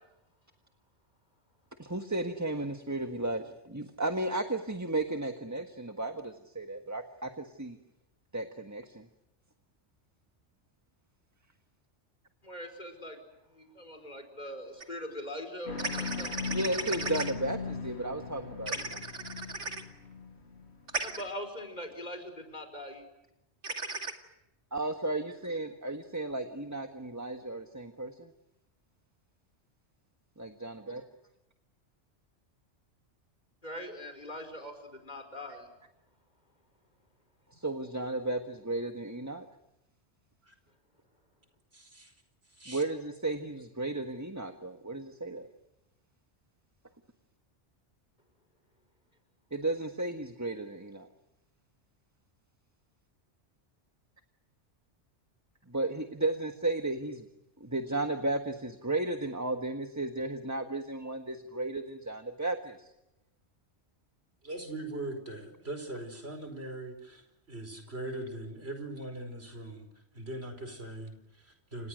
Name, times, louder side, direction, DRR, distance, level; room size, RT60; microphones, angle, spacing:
voice 1, 1.8-7.8 8.3-9.0 16.5-18.8 24.7-28.3 30.4-31.0 37.5-39.5 42.7-45.5 49.5-51.1 55.7-57.2 57.6-62.9, right 2 dB, 15° right, 6 dB, 1.6 m, -34 dB
voice 2, 12.4-13.2 13.5-16.3 21.0-23.0 33.6-35.7, left 1 dB, 40° left, 7 dB, 5.4 m, -42 dB
sound 1, 14.8-14.9 15.8-17.3 18.7-19.8 20.9-21.2 23.6-24.1, right 3 dB, 85° right, 2.8 m, -35 dB
sound 2, 15.7-21.1, left 5 dB, 65° left, 2.2 m, -39 dB
voice 3, 41.7-42.1 42.6-42.8 64.4-67.2 67.5-69.9 70.1-71.9, right 1 dB, 60° right, 7 dB, 5.2 m, -40 dB
30.0 x 27.0 x 6.5 m, 0.89 s
omnidirectional pair, 1.2 m